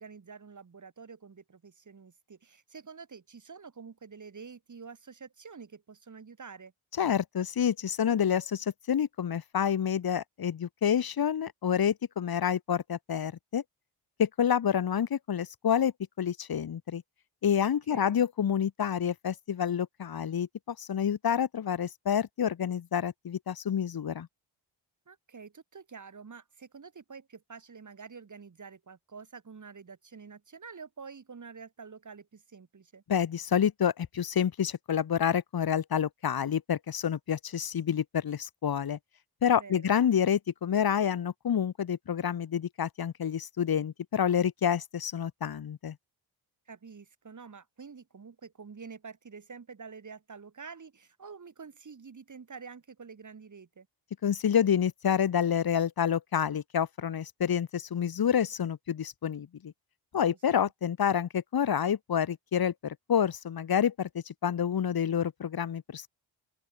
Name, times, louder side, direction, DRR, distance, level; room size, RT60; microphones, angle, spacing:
voice 1, 0.0-6.7 17.6-18.3 25.1-33.0 39.6-39.9 46.7-53.9 60.1-60.7, right 5 dB, 35° right, 2.5 m, -48 dB
voice 2, 7.0-13.6 14.2-15.9 16.2-17.0 17.4-24.3 33.1-39.0 39.4-46.0 54.2-59.7 60.1-66.1, left 8 dB, 45° left, 1.3 m, -28 dB
open air
supercardioid pair, 55°, 50 cm